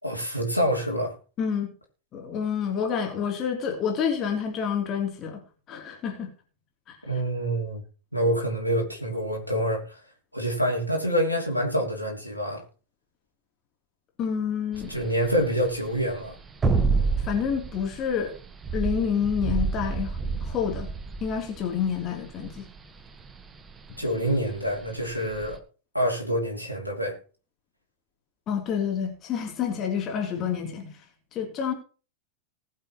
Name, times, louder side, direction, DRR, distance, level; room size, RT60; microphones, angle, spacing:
voice 1, 0.0-1.1 7.1-7.8 8.1-10.0 10.3-12.6 14.9-16.3 24.0-25.6 25.9-27.2, equal, 90° right, 2.8 m, -26 dB
voice 2, 1.4-1.7 2.1-5.4 5.7-6.3 6.9-7.0 14.2-14.9 17.2-18.3 18.7-20.9 21.2-22.7 28.5-31.0 31.3-31.7, left 7 dB, 30° left, 3.3 m, -28 dB
sound 1, 14.7-25.6, right 4 dB, 20° right, 1.3 m, -29 dB
19.5 x 7.4 x 3.1 m
figure-of-eight pair, 90°, 0 cm